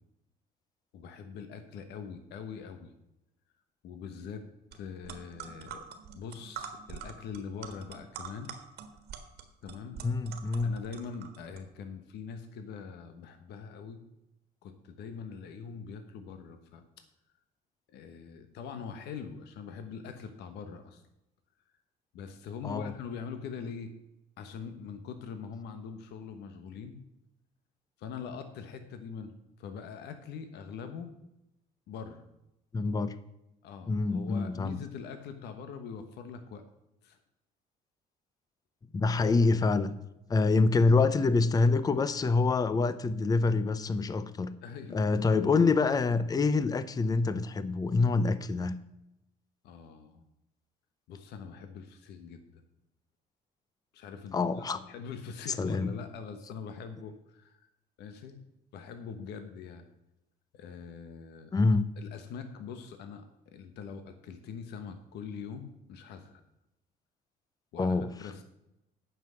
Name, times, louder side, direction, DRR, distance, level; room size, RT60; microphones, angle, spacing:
voice 1, 0.9-2.9 3.8-5.8 6.1-8.6 9.6-10.0 10.6-14.0 14.6-17.0 17.9-21.0 22.1-23.9 24.4-27.0 28.0-31.1 31.9-32.2 33.6-36.6 37.0-37.2 40.3-40.5 44.6-45.1 49.6-50.2 51.1-52.6 53.9-57.7 58.0-58.4 58.7-59.9 60.5-61.5 62.0-66.4 67.7-68.4, left 6 dB, 80° left, 8 dB, 1.1 m, -43 dB
sound 1, 4.7-4.8 5.0-11.6, right 8 dB, 75° right, 1.6 m, -45 dB
voice 2, 10.0-10.8 22.6-22.9 32.7-33.1 33.9-34.8 38.9-40.0 40.3-44.5 44.9-48.7 54.3-54.8 55.5-55.9 61.5-61.9 67.8-68.3, left 3 dB, 20° left, 14 dB, 0.6 m, -26 dB
9.2 x 6.0 x 7.6 m, 0.89 s
cardioid pair, 110°, 17 cm